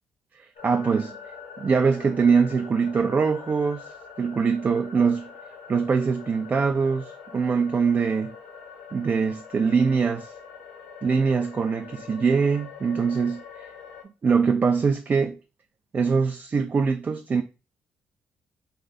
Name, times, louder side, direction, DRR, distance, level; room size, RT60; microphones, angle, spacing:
voice 1, 0.3-1.2 1.6-5.3 5.7-8.3 8.9-10.3 11.0-13.7 14.2-15.4 15.9-17.4, right 5 dB, 40° right, 0.3 m, -23 dB
sound 1, 0.6-14.0, left 6 dB, 80° left, 0.8 m, -44 dB
2.6 x 2.1 x 4.0 m
hypercardioid pair, 45°, 4 cm